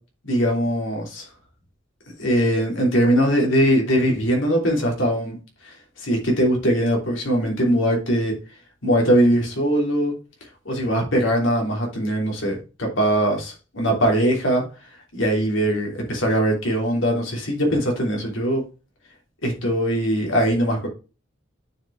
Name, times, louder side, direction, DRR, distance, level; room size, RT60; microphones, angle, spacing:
voice 1, 0.2-1.2 2.2-5.4 6.0-8.3 8.8-10.1 10.6-14.6 15.1-18.6 19.4-20.9, equal, 85° left, 0 dB, 3.2 m, -21 dB
9.0 x 5.1 x 3.5 m, 0.32 s
head